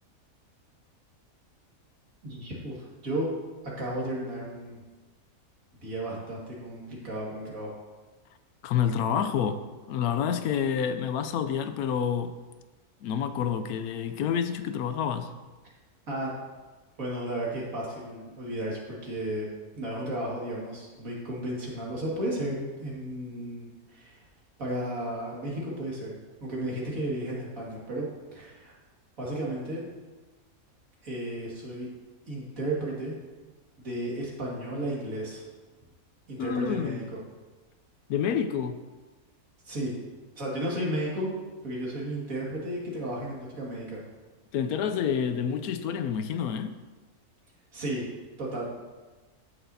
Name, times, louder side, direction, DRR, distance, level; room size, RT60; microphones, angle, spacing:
voice 1, 2.2-3.3 3.8-4.8 5.8-7.7 16.1-16.3 17.0-19.5 19.7-24.2 24.6-28.7 29.2-29.8 31.0-31.9 32.3-33.2 33.8-35.4 36.3-37.0 39.6-39.9 40.4-41.3 41.6-44.0 47.7-48.1 48.4-48.7, right 1 dB, 65° right, 2.5 m, -33 dB
voice 2, 8.6-9.6 9.9-12.3 13.0-15.3 36.4-37.0 38.1-38.8 44.5-46.7, left 8 dB, 80° left, 1.1 m, -28 dB
15.5 x 6.0 x 2.7 m
omnidirectional pair, 1.6 m